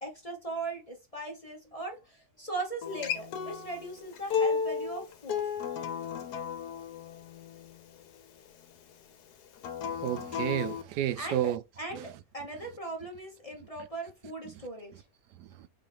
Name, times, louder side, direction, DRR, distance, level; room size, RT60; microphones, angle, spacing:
voice 1, 0.0-5.5 11.2-14.9, right 2 dB, 30° left, 0.8 m, -39 dB
Acoustic guitar, 2.8-8.0 9.6-10.8, left 6 dB, 80° left, 1.3 m, -34 dB
voice 2, 9.9-11.6 11.9-12.0 15.4-15.7, right 12 dB, 85° right, 1.2 m, -31 dB
4.6 x 3.5 x 3.2 m
omnidirectional pair, 1.7 m